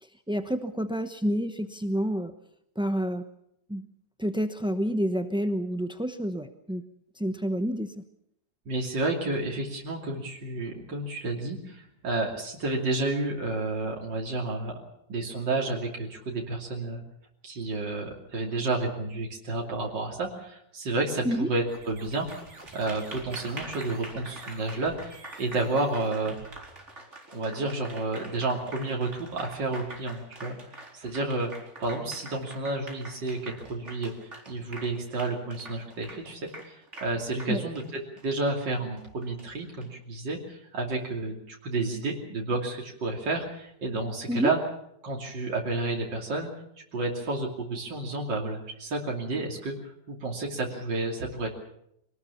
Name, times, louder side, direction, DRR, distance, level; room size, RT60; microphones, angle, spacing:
voice 1, 0.0-2.3 2.8-3.2 3.7-3.9 4.2-6.8 7.2-8.0 21.2-21.5 37.5-37.6 44.3-44.5, equal, 5° right, 8 dB, 0.5 m, -29 dB
voice 2, 8.7-14.8 15.1-17.0 17.4-22.3 22.7-26.4 27.3-31.5 31.8-44.6 45.0-46.5 46.9-51.5, right 2 dB, 90° right, -1 dB, 3.5 m, -31 dB
sound 1, 21.6-27.1, right 2 dB, 70° right, 5.2 m, -50 dB
Applause, 22.1-39.9, right 2 dB, 40° right, 4.6 m, -45 dB
25.0 x 19.0 x 7.1 m, 0.77 s
omnidirectional pair, 1.9 m